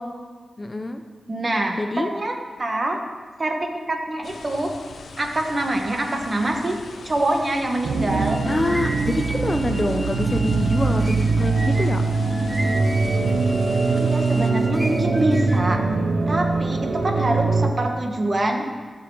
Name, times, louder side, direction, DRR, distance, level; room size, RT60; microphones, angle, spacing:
voice 1, 0.6-1.0 1.8-2.1 8.4-12.0, left 2 dB, 25° left, 6 dB, 0.6 m, -25 dB
voice 2, 1.3-3.0 3.4-3.6 3.9-4.7 5.2-6.8 7.0-8.4 13.9-15.8 16.3-18.6, right 1 dB, 35° right, 2 dB, 1.4 m, -25 dB
sound 1, 4.2-14.5, left 4 dB, 85° left, 0.7 m, -41 dB
sound 2, 7.8-17.7, right 3 dB, 80° right, 0.8 m, -22 dB
sound 3, 8.3-15.8, right 1 dB, 5° right, 1.2 m, -36 dB
15.0 x 7.0 x 4.9 m, 1.5 s
wide cardioid pair, 110°, 0 cm